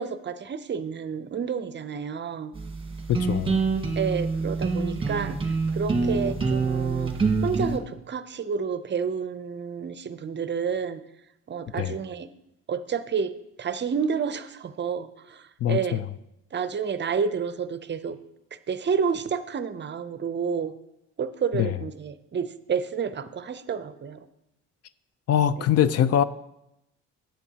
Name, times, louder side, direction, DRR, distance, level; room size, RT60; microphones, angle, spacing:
voice 1, 0.0-2.5 3.9-7.1 7.4-11.0 11.5-12.3 12.7-13.3 13.6-16.0 16.5-18.2 18.7-20.7 21.2-24.3 25.6-25.7, right 6 dB, 35° right, 12 dB, 0.6 m, -30 dB
sound 1, 2.5-7.8, right 4 dB, 20° right, 1.4 m, -26 dB
voice 2, 3.1-3.5 11.8-11.9 15.6-16.0 21.5-21.7 25.3-26.2, left 10 dB, 55° left, 15 dB, 0.5 m, -22 dB
12.5 x 8.7 x 2.8 m, 0.86 s
cardioid pair, 90°, 30 cm